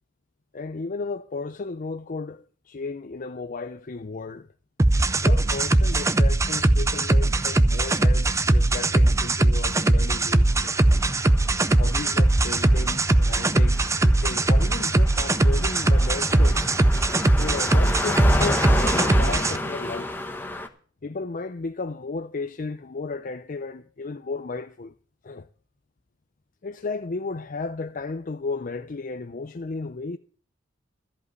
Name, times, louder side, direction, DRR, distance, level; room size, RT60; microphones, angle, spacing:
voice 1, 0.5-4.5 5.2-10.8 11.7-16.6 17.3-20.2 21.0-24.9 25.2-25.5 26.6-30.2, left 3 dB, 45° left, 0.5 m, -34 dB
sound 1, 4.8-19.6, right 2 dB, 15° right, 0.5 m, -20 dB
Car passing by, 10.7-20.7, left 1 dB, 10° left, 1.1 m, -31 dB
13.5 x 5.4 x 9.4 m
head